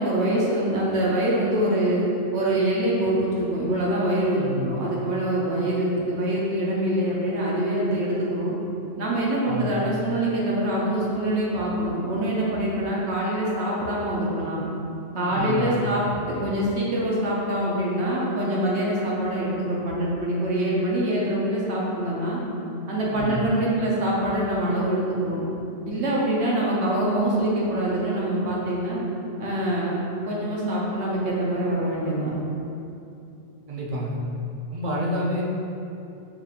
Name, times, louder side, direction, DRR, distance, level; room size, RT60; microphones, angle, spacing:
voice 1, 0.0-2.1 2.3-8.5 9.0-14.6 15.1-16.0 16.4-22.4 22.9-25.4 25.9-29.0 29.4-30.0 30.3-32.3, right 1 dB, 70° right, -5 dB, 1.0 m, -24 dB
voice 2, 4.4-4.8 9.5-9.8 15.3-15.8 23.1-23.5 33.7-34.2 34.7-35.4, equal, 50° right, -4 dB, 0.7 m, -29 dB
5.6 x 2.5 x 2.8 m, 2.8 s
omnidirectional pair, 1.3 m